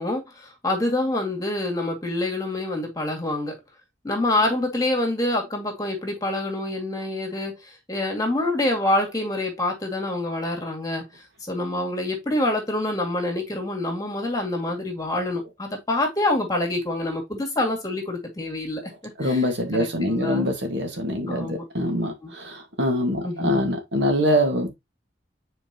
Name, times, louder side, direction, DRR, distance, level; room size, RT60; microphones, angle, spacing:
voice 1, 0.0-3.6 4.0-11.0 11.5-18.8 19.2-19.4 19.7-20.5 21.3-21.6 22.2-22.3 23.2-23.7, left 1 dB, 20° left, 2.2 m, -26 dB
voice 2, 19.2-24.7, equal, 70° right, 1.8 m, -24 dB
7.9 x 4.4 x 2.9 m
head